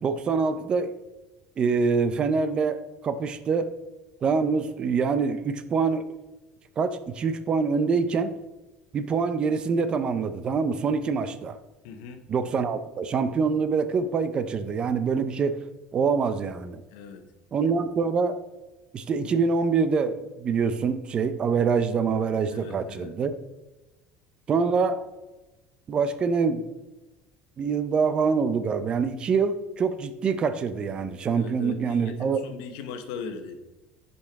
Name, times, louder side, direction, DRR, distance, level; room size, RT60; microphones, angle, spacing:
voice 1, 0.0-0.9 1.6-3.7 4.2-6.1 6.8-8.3 8.9-11.6 12.3-15.6 15.9-16.8 17.5-18.4 18.9-23.3 24.5-25.0 25.9-26.6 27.6-32.4, right 5 dB, 30° right, 12 dB, 0.5 m, -25 dB
voice 2, 11.8-12.2 16.9-17.2 22.5-23.1 31.3-33.6, left 5 dB, 90° left, 8 dB, 1.0 m, -39 dB
10.0 x 5.4 x 3.5 m, 1.0 s
cardioid pair, 145°, 3 cm